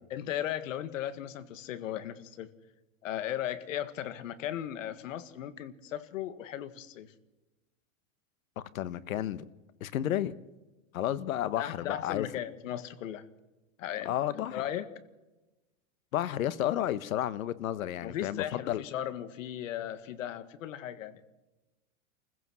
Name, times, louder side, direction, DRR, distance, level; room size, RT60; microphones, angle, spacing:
voice 1, 0.1-2.5 3.0-7.1 11.5-13.2 13.8-14.1 14.5-14.9 18.0-21.2, left 11 dB, 70° left, 1.8 m, -37 dB
voice 2, 8.7-9.4 9.8-10.3 10.9-12.3 14.0-14.6 16.1-18.8, left 12 dB, 85° left, 1.3 m, -31 dB
27.5 x 15.5 x 6.3 m
supercardioid pair, 165°, 40 cm